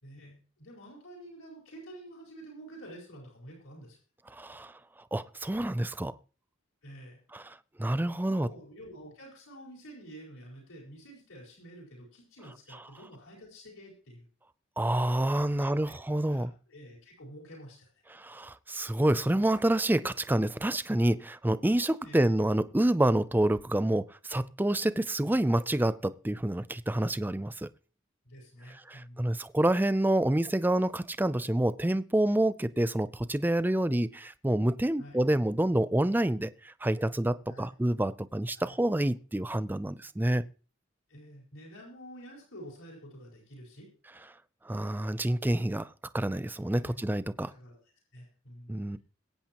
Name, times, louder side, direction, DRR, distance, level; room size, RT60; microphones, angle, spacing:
voice 1, 0.0-4.0 6.8-7.2 8.2-14.3 15.5-17.9 22.0-22.3 28.2-29.3 35.0-35.2 37.4-37.7 38.5-38.8 41.1-43.9 46.8-47.0 47.5-48.8, equal, 85° left, 4.8 m, -49 dB
voice 2, 4.3-4.7 5.1-6.1 7.3-8.5 14.8-16.5 18.1-27.7 28.9-40.4 44.7-45.9 46.1-47.5 48.7-49.0, right 1 dB, 10° right, 0.4 m, -28 dB
22.0 x 8.8 x 3.0 m
head